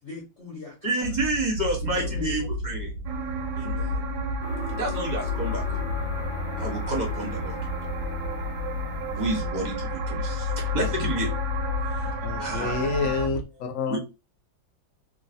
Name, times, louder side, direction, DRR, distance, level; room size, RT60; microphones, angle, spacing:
voice 1, 0.0-1.2 1.8-2.5 3.5-4.1, left 4 dB, 40° left, -5 dB, 1.2 m, -41 dB
voice 2, 0.8-2.9 3.6-3.7 4.7-5.8 6.6-7.6 9.1-11.3 12.4-12.9 13.9-14.0, right 1 dB, 30° right, -1 dB, 0.9 m, -29 dB
sound 1, 1.0-13.4, left 3 dB, 65° right, 1.0 m, -31 dB
sound 2, 3.1-13.3, right 6 dB, 85° right, 1.3 m, -36 dB
sound 3, 4.4-9.4, left 5 dB, 85° left, 1.4 m, -41 dB
voice 3, 12.2-14.0, left 5 dB, 65° left, 3 dB, 0.8 m, -28 dB
3.1 x 2.5 x 2.6 m, 0.27 s
omnidirectional pair, 2.1 m